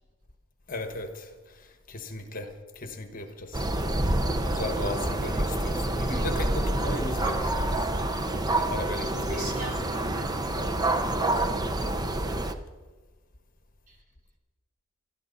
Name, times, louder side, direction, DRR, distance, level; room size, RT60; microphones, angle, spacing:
voice 1, 0.7-2.5 2.7-3.7 4.4-7.9 8.4-9.7 10.5-11.2, left 2 dB, 40° left, 6 dB, 1.3 m, -37 dB
sound 1, 3.5-12.5, right 1 dB, 20° right, 0.8 m, -27 dB
voice 2, 8.8-10.3 13.9-14.0, equal, 40° right, 0 dB, 3.3 m, -40 dB
21.0 x 13.0 x 4.1 m, 1.4 s
head